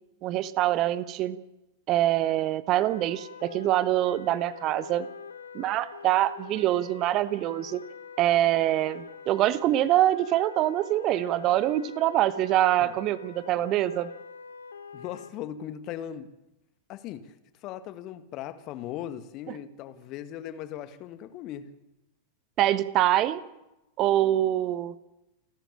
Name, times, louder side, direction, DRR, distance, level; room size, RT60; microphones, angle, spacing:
voice 1, 0.2-1.4 1.9-5.1 5.5-7.8 8.2-14.1 22.6-23.4 24.0-24.9, right 13 dB, 35° right, 15 dB, 1.2 m, -24 dB
sound 1, 2.8-15.3, left 6 dB, 70° left, 1.3 m, -44 dB
voice 2, 14.9-16.3 16.9-17.3 17.6-21.7, left 11 dB, 40° left, 10 dB, 1.9 m, -38 dB
29.5 x 12.5 x 8.7 m, 0.96 s
figure-of-eight pair, 90°, 0 cm